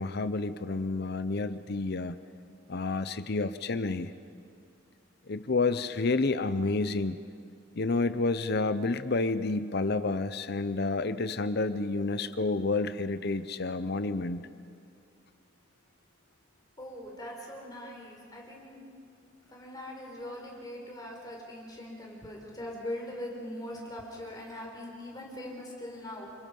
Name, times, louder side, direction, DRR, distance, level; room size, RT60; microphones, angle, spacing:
voice 1, 0.0-2.2 2.7-4.1 5.3-7.2 7.8-14.5, left 3 dB, 55° left, 12 dB, 0.7 m, -29 dB
voice 2, 16.8-18.9 19.5-26.3, left 1 dB, 20° left, -2 dB, 5.4 m, -41 dB
30.0 x 26.5 x 5.5 m, 2.3 s
head